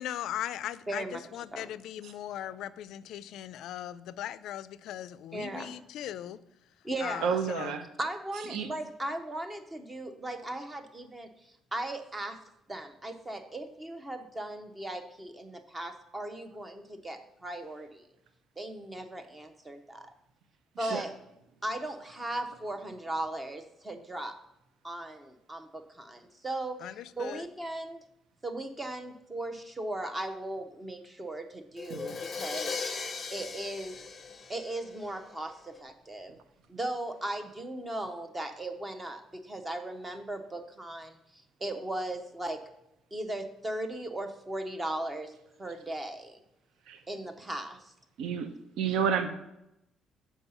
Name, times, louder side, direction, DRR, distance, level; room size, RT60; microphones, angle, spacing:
voice 1, 0.0-6.4 7.0-7.7 26.8-27.5, left 12 dB, 70° left, 16 dB, 0.3 m, -39 dB
voice 2, 0.9-1.2 1.5-1.7 2.4-2.6 5.3-5.8 6.8-7.4 8.0-11.3 11.7-12.4 12.7-18.0 18.6-20.1 20.8-21.1 21.6-24.3 24.8-26.8 27.2-28.0 28.4-34.0 34.5-36.4 36.7-42.6 43.1-46.4 47.1-47.9, right 1 dB, 15° right, 7 dB, 0.7 m, -37 dB
voice 3, 7.2-7.9 8.5-8.7 20.8-21.0 31.9-32.2 46.9-47.0 48.2-48.5 48.8-49.3, right 7 dB, 75° right, 8 dB, 0.6 m, -30 dB
Crash cymbal, 31.8-35.5, left 5 dB, 25° left, 0.6 m, -38 dB
7.1 x 4.7 x 5.5 m, 0.86 s
cardioid pair, 170°, 0 cm